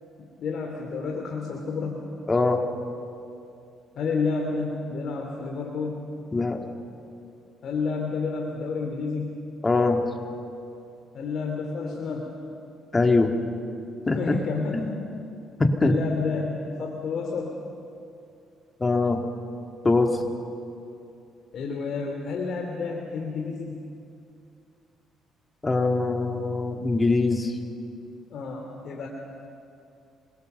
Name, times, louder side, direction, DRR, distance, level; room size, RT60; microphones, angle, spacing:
voice 1, 0.2-2.1 3.9-6.1 7.6-9.4 11.1-12.3 14.1-14.9 15.8-17.6 21.5-23.8 28.3-29.1, left 4 dB, 60° left, 1 dB, 2.9 m, -30 dB
voice 2, 2.3-2.6 6.3-6.6 9.6-10.0 12.9-13.3 14.1-14.4 14.7-14.9 15.6-15.9 18.8-19.2 19.8-20.2 25.6-27.6, left 3 dB, 25° left, 3 dB, 2.7 m, -22 dB
27.0 x 23.0 x 6.9 m, 2.6 s
cardioid pair, 90°, 0 cm